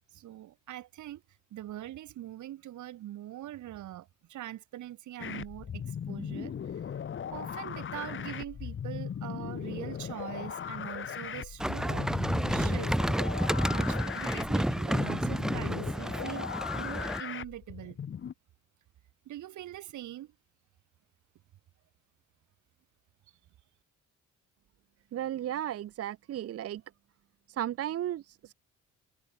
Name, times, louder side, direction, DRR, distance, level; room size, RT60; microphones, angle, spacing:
voice 1, 0.1-1.2 1.5-6.5 7.3-13.0 13.7-18.0 19.2-20.3, right 13 dB, 75° right, 1.6 m, -43 dB
sound 1, 5.2-18.3, left 8 dB, 40° left, 1.1 m, -38 dB
sound 2, 11.6-17.2, right 1 dB, ahead, 0.4 m, -30 dB
voice 2, 25.1-26.8 27.5-28.5, right 11 dB, 50° right, 0.6 m, -34 dB
cardioid pair, 90°, 30 cm